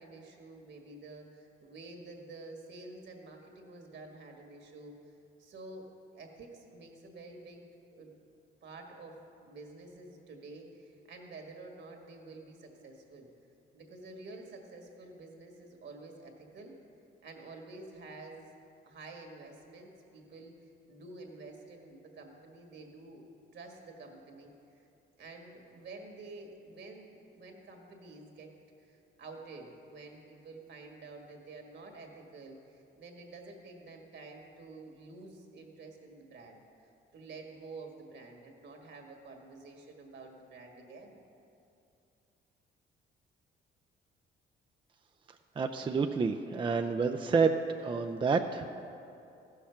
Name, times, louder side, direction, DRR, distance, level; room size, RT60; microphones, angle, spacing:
voice 1, 0.0-5.0 5.4-5.9 6.1-7.6 7.9-8.2 8.6-13.3 13.7-16.7 17.2-18.5 18.8-20.5 20.9-23.2 23.5-24.8 25.2-28.5 28.8-36.6 37.1-41.2, right 3 dB, 65° right, 2 dB, 1.8 m, -49 dB
voice 2, 45.6-48.6, right 5 dB, 25° right, 6 dB, 0.4 m, -29 dB
14.0 x 6.5 x 5.8 m, 2.7 s
cardioid pair, 90°, 20 cm